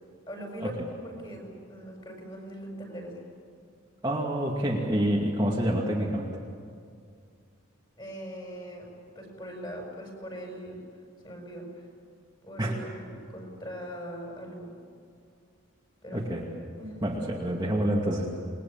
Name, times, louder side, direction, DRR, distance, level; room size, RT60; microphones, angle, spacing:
voice 1, 0.3-3.3 8.0-10.8 11.2-11.7 12.4-14.8 16.0-16.3 16.8-17.0, equal, 25° left, 1 dB, 6.6 m, -41 dB
voice 2, 4.0-6.4 12.6-12.7 16.1-16.4 17.0-18.3, right 1 dB, 20° right, -3 dB, 2.4 m, -27 dB
28.5 x 21.5 x 8.9 m, 2.2 s
head